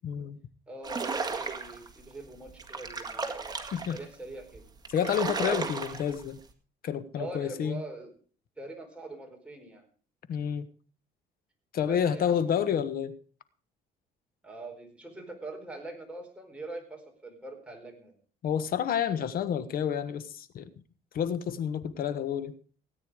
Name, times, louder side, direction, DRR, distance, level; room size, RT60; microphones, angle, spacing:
voice 1, 0.0-0.4 3.7-4.0 4.9-6.4 6.8-7.8 10.3-10.7 11.7-13.2 18.4-20.7 21.1-22.5, left 8 dB, 60° left, 14 dB, 1.3 m, -29 dB
voice 2, 0.7-3.5 3.9-4.7 7.1-8.1 8.6-9.8 11.8-12.7 14.4-18.1, right 2 dB, 5° right, 1 dB, 4.5 m, -43 dB
sound 1, 0.8-1.9 2.5-4.0 4.5-4.6 4.8-6.2, right 4 dB, 25° right, 1.9 m, -34 dB
17.0 x 9.2 x 4.9 m, 0.42 s
cardioid pair, 110°, 17 cm